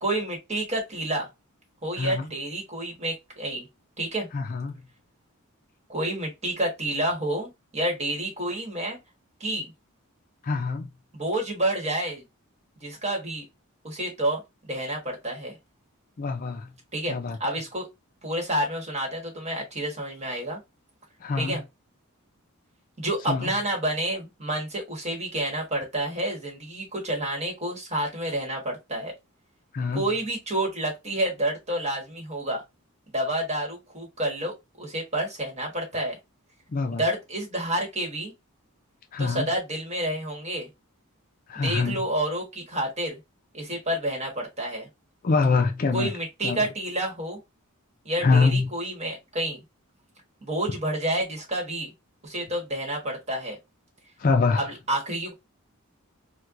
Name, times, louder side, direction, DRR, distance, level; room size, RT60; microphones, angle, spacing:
voice 1, 0.0-1.3 1.8-3.7 4.0-4.3 5.9-9.0 9.4-9.7 11.1-12.2 12.8-13.4 13.8-15.6 16.9-17.1 17.4-17.9 18.2-20.6 21.4-21.6 23.0-29.1 29.9-32.6 33.1-36.1 37.0-38.3 39.2-40.7 41.5-43.2 43.5-44.9 45.9-47.4 48.0-49.6 50.4-51.9 52.2-53.6 54.6-55.3, right 1 dB, 30° right, 1.4 m, -29 dB
voice 2, 2.0-2.3 4.3-4.7 10.4-10.9 16.2-16.7 17.1-17.4 21.2-21.6 23.3-23.5 29.7-30.0 36.7-37.0 39.1-39.5 41.5-42.1 45.2-46.1 46.4-46.7 48.2-48.7 54.2-54.7, left 4 dB, 40° left, 0.4 m, -24 dB
4.3 x 2.2 x 2.4 m
head